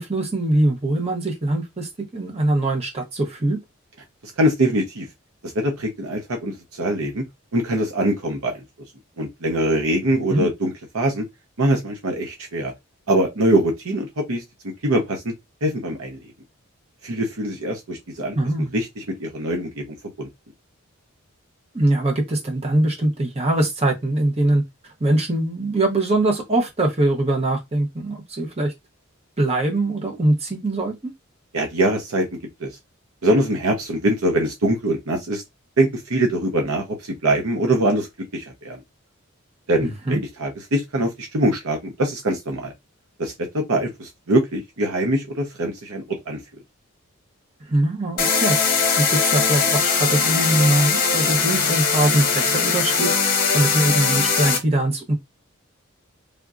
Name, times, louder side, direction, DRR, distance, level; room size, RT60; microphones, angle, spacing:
voice 1, 0.0-3.6 10.3-10.5 18.3-18.7 21.7-28.7 29.4-31.1 39.8-40.2 47.7-55.1, right 1 dB, 30° right, 0.9 m, -22 dB
voice 2, 4.4-5.1 5.4-7.3 7.5-8.6 9.2-11.2 11.6-12.7 13.1-14.4 14.8-15.3 15.6-16.2 17.0-18.4 18.7-19.8 20.2-20.3 31.5-32.7 33.2-35.4 35.8-38.1 38.3-38.8 39.7-42.7 43.2-46.4, right 1 dB, 85° right, 0.8 m, -23 dB
sound 1, 48.2-54.6, left 5 dB, 40° left, 0.8 m, -20 dB
3.5 x 2.6 x 2.4 m
head